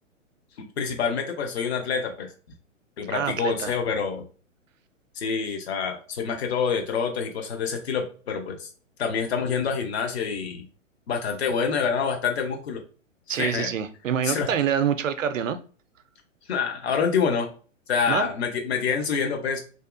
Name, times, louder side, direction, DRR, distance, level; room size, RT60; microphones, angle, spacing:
voice 1, 0.6-2.3 3.0-4.3 5.1-8.7 9.0-10.7 11.1-12.8 13.3-13.7 14.2-14.5 16.5-17.5 17.9-19.6, left 6 dB, 50° left, 0.7 m, -27 dB
voice 2, 3.1-3.7 13.3-15.6 18.1-18.3, right 8 dB, 70° right, 0.5 m, -26 dB
2.7 x 2.2 x 2.4 m
figure-of-eight pair, 115°, 40 cm